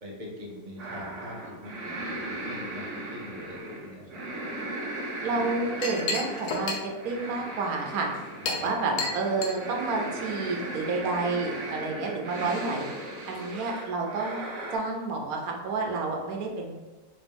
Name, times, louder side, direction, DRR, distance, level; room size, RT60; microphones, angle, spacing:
voice 1, 0.0-4.2 8.4-9.0, equal, 40° right, -3 dB, 0.7 m, -43 dB
sound 1, 0.8-14.8, right 1 dB, 60° right, 1.3 m, -37 dB
voice 2, 5.2-8.1 8.5-12.9 13.3-14.4 14.7-16.7, right 3 dB, 80° right, 1 dB, 1.2 m, -30 dB
Chink clink, 5.3-10.7, left 3 dB, 80° left, 1.1 m, -35 dB
4.2 x 2.6 x 3.4 m, 1.2 s
omnidirectional pair, 1.5 m